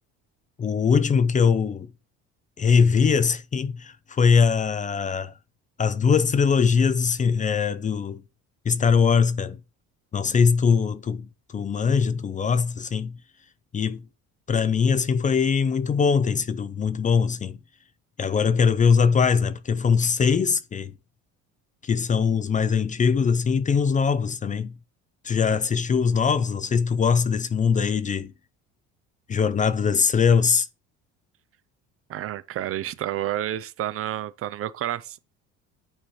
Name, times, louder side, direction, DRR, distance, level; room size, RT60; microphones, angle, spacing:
voice 1, 0.6-1.9 2.6-5.3 5.8-8.2 8.7-9.6 10.1-13.1 13.7-14.0 14.5-17.6 18.2-20.9 21.8-24.7 25.2-28.3 29.3-30.7, left 6 dB, 25° left, 0.4 m, -21 dB
voice 2, 32.1-35.2, right 12 dB, 45° right, 0.5 m, -30 dB
8.7 x 4.2 x 3.2 m
cardioid pair, 100°, 31 cm